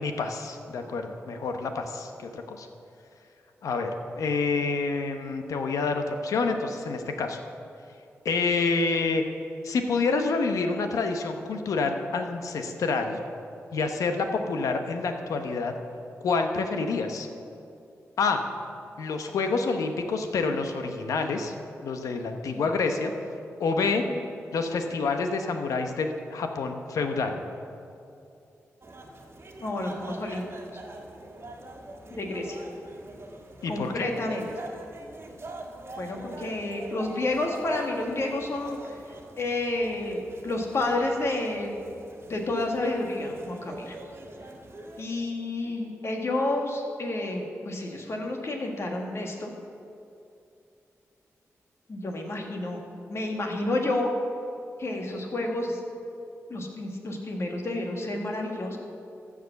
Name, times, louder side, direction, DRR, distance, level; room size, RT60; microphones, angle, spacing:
voice 1, 0.0-2.7 3.6-7.4 8.2-9.2 9.6-13.2 13.7-15.7 16.2-17.3 18.2-18.4 19.0-21.5 21.8-23.1 23.6-24.0 24.5-27.4 33.6-34.1, left 4 dB, 85° left, 5 dB, 0.9 m, -28 dB
sound 1, 28.8-45.0, right 2 dB, 50° right, 1.5 m, -44 dB
voice 2, 29.6-30.4 32.1-32.6 33.7-34.5 36.0-39.0 39.4-41.7 42.3-44.0 45.0-49.5 51.9-52.8 53.1-54.1 54.8-55.8 56.5-58.8, left 2 dB, 55° left, 1 dB, 1.8 m, -30 dB
14.0 x 5.0 x 6.9 m, 2.6 s
cardioid pair, 55°, 6 cm